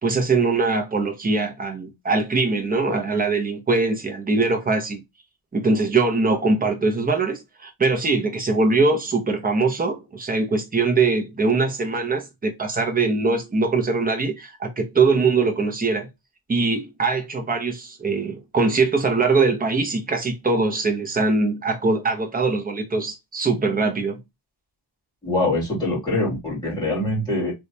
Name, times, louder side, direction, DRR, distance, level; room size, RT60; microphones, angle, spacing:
voice 1, 0.0-5.0 5.5-16.1 16.5-24.2, right 3 dB, 20° right, 0.8 m, -22 dB
voice 2, 25.2-27.5, left 2 dB, 10° left, 2.4 m, -24 dB
3.3 x 3.2 x 2.7 m
wide cardioid pair, 165°, 49 cm